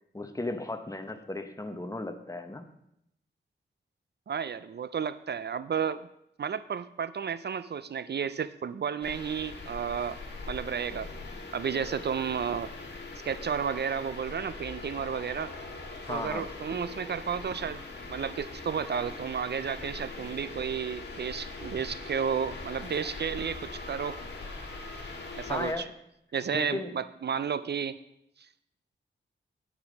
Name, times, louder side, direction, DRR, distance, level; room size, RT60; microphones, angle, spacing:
voice 1, 0.1-2.7 16.1-16.5 25.5-25.9 26.5-26.9, left 2 dB, 15° left, 7 dB, 1.0 m, -35 dB
voice 2, 4.3-6.0 6.4-10.2 10.5-11.1 11.5-12.7 13.2-15.5 16.1-17.8 18.1-24.2 25.3-25.9 26.3-27.9, right 7 dB, 60° right, 15 dB, 0.4 m, -32 dB
sound 1, 9.0-25.7, left 3 dB, 60° left, 2.1 m, -41 dB
9.6 x 8.6 x 5.2 m, 0.78 s
wide cardioid pair, 115°, 20 cm